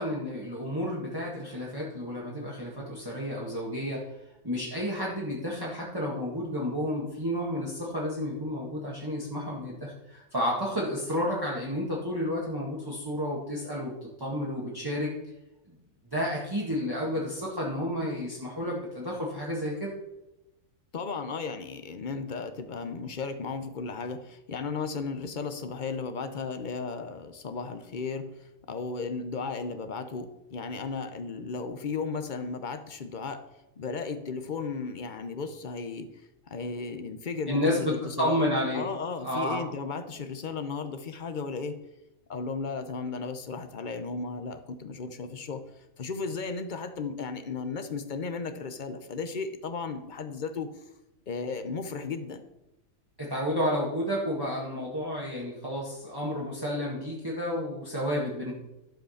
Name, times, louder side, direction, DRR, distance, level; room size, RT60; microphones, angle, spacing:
voice 1, 0.0-4.1 4.4-15.1 15.7-15.8 16.0-19.9 37.5-38.8 39.2-39.6 53.2-58.5, equal, 15° right, -5 dB, 1.7 m, -31 dB
voice 2, 20.9-33.4 33.8-36.1 36.5-38.4 38.7-41.8 42.3-45.6 46.0-50.7 51.3-52.4, left 4 dB, 45° left, 8 dB, 0.7 m, -35 dB
12.0 x 5.1 x 6.5 m, 0.94 s
omnidirectional pair, 1.6 m